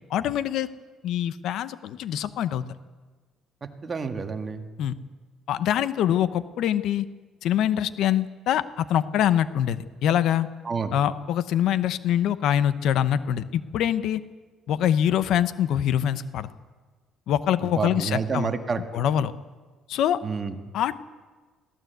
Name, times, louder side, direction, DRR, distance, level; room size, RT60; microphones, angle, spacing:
voice 1, 0.1-0.7 1.0-2.6 4.8-4.9 5.5-7.1 7.4-10.5 10.9-14.2 14.7-16.5 17.3-18.5 18.9-19.3 19.9-20.2 20.7-20.9, left 10 dB, 70° left, 14 dB, 0.8 m, -24 dB
voice 2, 3.8-4.7 10.6-10.9 17.6-18.8 20.2-20.5, right 5 dB, 30° right, 6 dB, 1.6 m, -29 dB
22.0 x 15.5 x 8.0 m, 1.4 s
cardioid pair, 135°, 0 cm